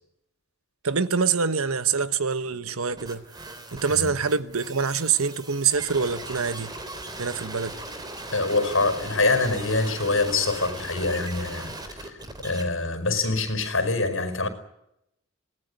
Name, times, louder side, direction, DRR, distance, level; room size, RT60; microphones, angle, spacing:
voice 1, 0.8-3.2 3.7-6.7 7.2-7.8, right 5 dB, 85° right, 1.2 m, -25 dB
sound 1, 3.0-12.6, right 2 dB, 20° right, 3.4 m, -39 dB
voice 2, 8.3-12.1 12.4-14.5, left 3 dB, 65° left, 5.2 m, -25 dB
25.5 x 19.0 x 9.6 m
head